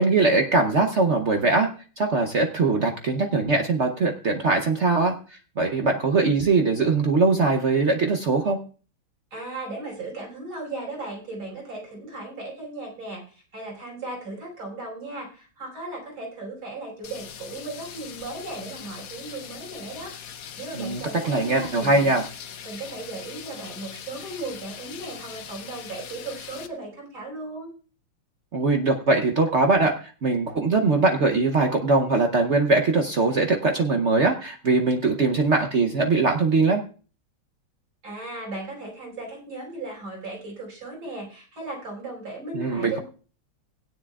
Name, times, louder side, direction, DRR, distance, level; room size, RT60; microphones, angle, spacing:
voice 1, 0.0-1.7 2.0-8.6 20.7-22.3 28.5-36.8 42.5-43.0, right 3 dB, 60° right, 4 dB, 0.7 m, -21 dB
voice 2, 9.3-22.1 22.7-27.7 38.0-43.0, right 2 dB, 80° right, -2 dB, 6.0 m, -36 dB
sound 1, 17.0-26.7, left 8 dB, 60° left, 1.0 m, -41 dB
17.0 x 9.8 x 2.4 m, 0.37 s
omnidirectional pair, 2.2 m